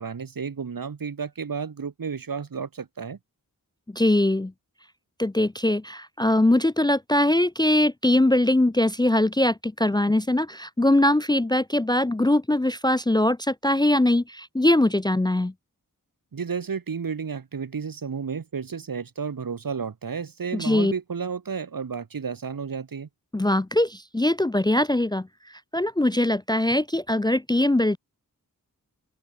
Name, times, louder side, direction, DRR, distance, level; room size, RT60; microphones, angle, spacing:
voice 1, 0.0-3.2 16.3-23.1, right 6 dB, 75° right, 1.8 m, -32 dB
voice 2, 3.9-4.5 5.2-15.5 20.5-20.9 23.3-25.3 25.7-28.0, left 1 dB, 10° left, 0.5 m, -21 dB
open air
wide cardioid pair, 95°, 35 cm